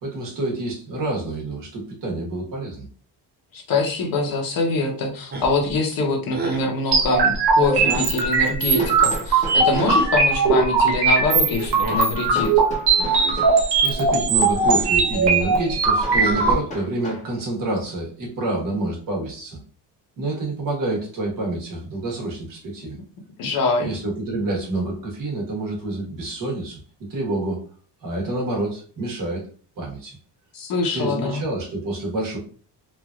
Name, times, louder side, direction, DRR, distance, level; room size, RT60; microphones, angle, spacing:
voice 1, 0.0-2.9 13.5-19.6 20.2-23.0 23.8-26.8 27.1-27.6 28.0-29.5 29.8-30.1 30.9-32.4, right 2 dB, 50° right, -2 dB, 1.3 m, -28 dB
voice 2, 3.5-12.6 23.4-23.9 30.5-31.4, left 3 dB, 55° left, 2 dB, 0.9 m, -24 dB
sound 1, 5.3-5.7 6.3-6.7 7.7-8.2 9.7-10.1 11.6-12.1 12.9-13.5 14.5-15.0 16.0-16.7, right 3 dB, 25° right, 0.5 m, -31 dB
sound 2, 6.9-16.5, right 4 dB, 75° right, 0.9 m, -19 dB
Hammer, 8.8-10.1 12.3-13.6 16.0-17.3, equal, 15° left, 0.8 m, -35 dB
3.1 x 2.5 x 2.3 m, 0.43 s
cardioid pair, 160°, 41 cm